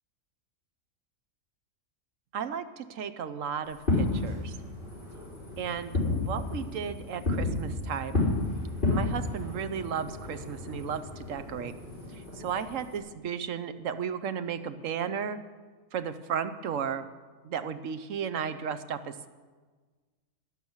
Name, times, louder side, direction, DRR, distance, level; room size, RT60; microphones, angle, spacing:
voice 1, 2.3-4.5 5.6-8.2 8.9-11.7 12.1-15.4 15.9-17.0 17.4-19.3, right 7 dB, 70° right, 11 dB, 1.1 m, -34 dB
Fireworks, 3.7-13.0, left 2 dB, 35° left, 3.8 m, -32 dB
12.0 x 10.0 x 7.3 m, 1.4 s
omnidirectional pair, 1.4 m